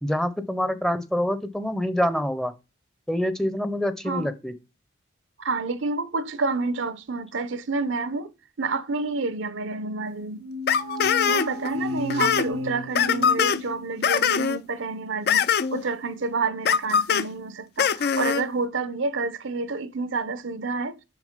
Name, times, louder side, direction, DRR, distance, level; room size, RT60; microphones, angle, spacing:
voice 1, 0.0-2.5 3.1-4.5, equal, ahead, 0.6 m, -26 dB
voice 2, 4.0-4.3 5.4-8.3 8.6-10.5 11.3-21.0, right 3 dB, 70° right, 0.7 m, -29 dB
sound 1, 10.4-14.1, left 1 dB, 90° right, 1.3 m, -33 dB
sound 2, 10.7-11.7 12.0-12.5 12.9-13.6 14.0-14.6 15.3-15.8 16.7-17.2 17.8-18.4, left 7 dB, 50° left, 0.4 m, -22 dB
6.4 x 5.9 x 5.1 m
head